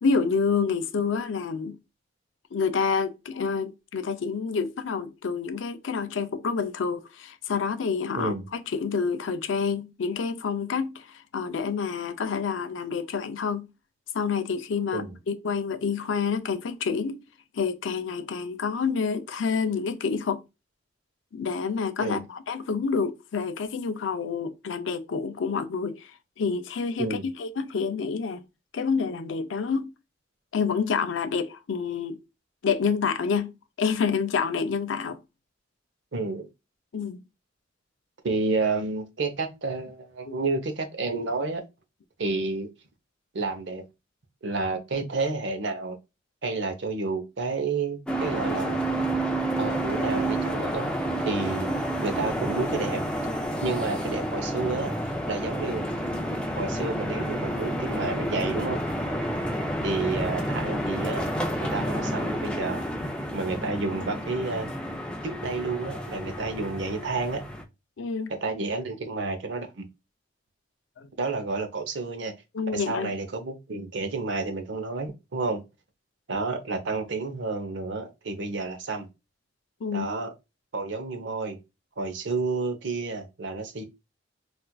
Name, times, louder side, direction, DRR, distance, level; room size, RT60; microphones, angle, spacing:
voice 1, 0.0-1.8 2.5-13.7 14.1-17.2 17.5-20.4 21.3-28.4 28.7-29.9 30.5-32.2 32.6-33.5 33.8-35.2 36.9-37.2 40.3-40.4 68.0-68.3 71.0-71.1 72.5-73.1 79.8-80.1, left 5 dB, 75° left, 0.4 m, -28 dB
voice 2, 36.1-36.5 38.2-41.6 42.2-42.7 43.3-43.8 44.4-46.0 46.4-48.8 49.6-50.9 51.2-51.7 52.0-53.0 53.6-54.9 55.3-55.8 56.6-58.8 59.8-61.3 61.6-62.8 63.3-64.7 65.2-67.4 68.3-69.8 71.2-72.3 72.7-75.6 76.3-79.1 79.9-80.3 80.7-81.6 82.0-83.8, right 3 dB, 70° right, 0.7 m, -30 dB
sound 1, 48.1-67.6, right 1 dB, 5° left, 0.4 m, -30 dB
4.2 x 2.4 x 2.2 m
head